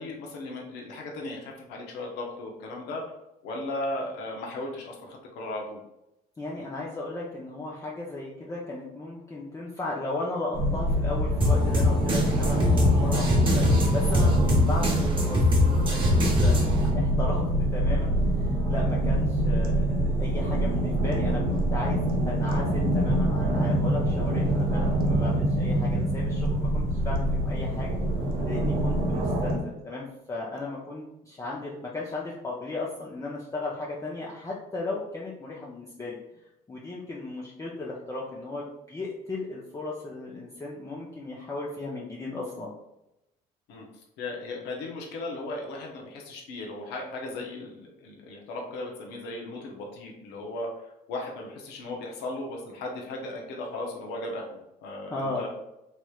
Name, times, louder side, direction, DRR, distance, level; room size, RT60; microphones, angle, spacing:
voice 1, 0.0-3.0 3.4-5.8 14.7-14.8 43.7-43.9 44.2-55.5, left 2 dB, 90° left, 0 dB, 0.7 m, -36 dB
voice 2, 6.4-13.2 13.5-17.4 17.7-28.0 28.4-36.2 36.7-42.7 55.1-55.5, left 2 dB, 20° left, -5 dB, 0.5 m, -36 dB
sound 1, 10.5-29.6, right 1 dB, 60° right, 0.7 m, -25 dB
sound 2, 11.4-16.9, left 1 dB, 30° right, 1.0 m, -23 dB
3.1 x 3.0 x 2.3 m, 0.88 s
cardioid pair, 110°, 17 cm